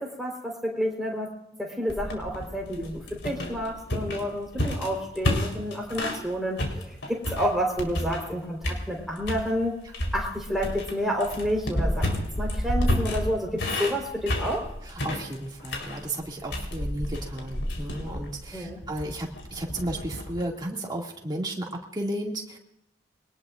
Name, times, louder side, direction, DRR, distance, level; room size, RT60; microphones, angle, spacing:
voice 1, 0.0-9.8 10.1-14.7 18.5-18.8, equal, ahead, -1 dB, 4.2 m, -30 dB
sound 1, 1.9-6.3 6.6-8.3 8.6-9.5 9.9-20.4, left 1 dB, 90° left, 4.1 m, -30 dB
voice 2, 15.0-22.6, right 1 dB, 25° right, -1 dB, 2.4 m, -34 dB
24.0 x 19.0 x 2.6 m, 0.85 s
head